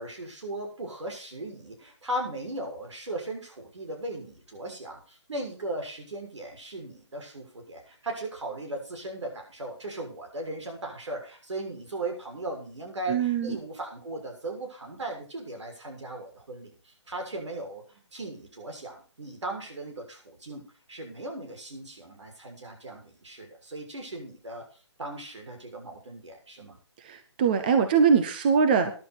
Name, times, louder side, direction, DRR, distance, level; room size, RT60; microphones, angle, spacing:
voice 1, 0.0-20.6 20.9-24.6 25.0-26.8, right 2 dB, 75° right, 2 dB, 6.7 m, -37 dB
voice 2, 13.1-13.6 27.0-28.9, right 6 dB, 20° right, 8 dB, 0.8 m, -22 dB
14.5 x 11.0 x 4.3 m, 0.39 s
hypercardioid pair, 170°, 15 cm